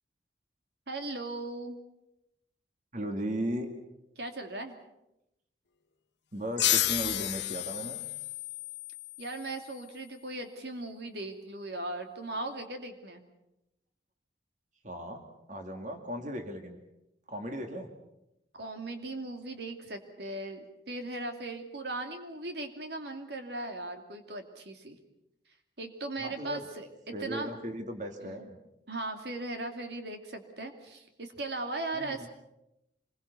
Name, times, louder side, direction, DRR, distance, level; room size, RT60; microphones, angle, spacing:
voice 1, 0.9-1.8 4.2-4.8 9.2-13.2 18.6-25.0 25.8-27.5 28.2-28.5 28.9-32.3, right 2 dB, 65° right, 5 dB, 2.6 m, -38 dB
voice 2, 2.9-3.7 6.3-8.0 14.8-15.2 15.5-16.8 17.3-17.9 26.2-26.6 27.1-28.6 31.9-32.3, equal, 45° right, 5 dB, 2.4 m, -36 dB
sound 1, 6.6-9.8, left 14 dB, 75° left, 1.1 m, -31 dB
26.5 x 22.0 x 6.9 m, 0.87 s
head